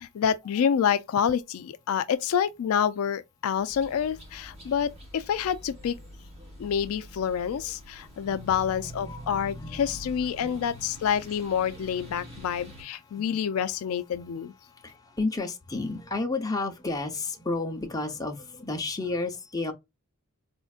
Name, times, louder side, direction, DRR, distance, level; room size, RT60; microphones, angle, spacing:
voice 1, 0.0-6.0 6.6-14.5, left 8 dB, 75° left, 0.3 m, -28 dB
sound 1, 3.7-12.8, equal, 30° right, 1.3 m, -47 dB
voice 2, 8.2-11.1 11.7-12.4 13.1-13.4 14.7-19.7, left 3 dB, 15° left, 0.7 m, -33 dB
4.3 x 2.5 x 2.3 m
head